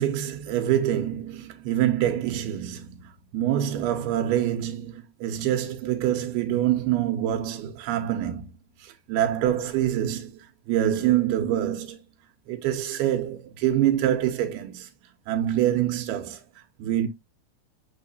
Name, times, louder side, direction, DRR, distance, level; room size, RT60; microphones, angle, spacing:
voice 1, 0.0-8.5 8.8-10.3 10.7-12.0 12.5-14.9 15.3-16.4 16.8-17.1, right 11 dB, 85° right, 3.0 m, -25 dB
6.6 x 6.3 x 2.5 m
omnidirectional pair, 4.5 m